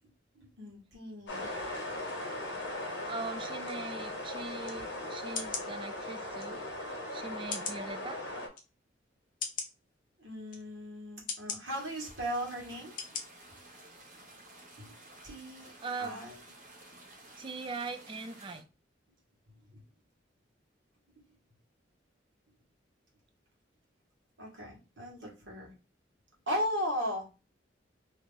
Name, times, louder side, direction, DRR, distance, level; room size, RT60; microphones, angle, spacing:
voice 1, 0.3-1.5 10.2-13.2 13.5-13.6 14.8-15.7 16.0-16.4 19.5-19.8 21.1-21.3 24.4-25.7 26.5-27.3, equal, 75° right, -1 dB, 1.4 m, -37 dB
sound 1, 1.3-8.5, left 1 dB, 75° left, 1.0 m, -39 dB
voice 2, 3.1-6.7 7.1-8.2 15.8-16.2 17.4-18.6, right 3 dB, 30° right, 9 dB, 0.4 m, -41 dB
sound 2, 4.6-4.8 5.3-5.7 6.4-6.5 7.5-7.8 8.5-8.6 9.4-9.7 10.5-10.6 11.3-11.6 12.3-12.4 13.0-13.2 13.7-13.8, left 6 dB, 50° left, 0.7 m, -37 dB
sound 3, 11.6-18.6, right 1 dB, 45° right, 1.0 m, -54 dB
2.8 x 2.4 x 3.7 m, 0.31 s
head